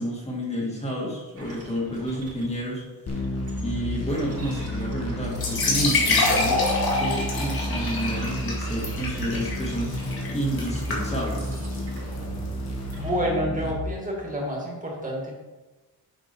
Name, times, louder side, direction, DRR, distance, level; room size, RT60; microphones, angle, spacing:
voice 1, 0.0-2.8 3.1-3.2 3.6-6.6 6.9-11.6, equal, 15° left, -3 dB, 2.2 m, -30 dB
sound 1, 1.4-2.6 3.1-6.0 6.3-9.3 9.6-12.6 12.9-13.2, right 1 dB, 35° right, 2.2 m, -43 dB
sound 2, 3.1-13.7, equal, 40° left, 1.3 m, -31 dB
sound 3, 5.3-12.9, left 3 dB, 65° left, 2.1 m, -27 dB
voice 2, 12.9-15.3, equal, 20° right, -2 dB, 2.2 m, -28 dB
7.7 x 6.1 x 4.6 m, 1.1 s
wide cardioid pair, 175°, 39 cm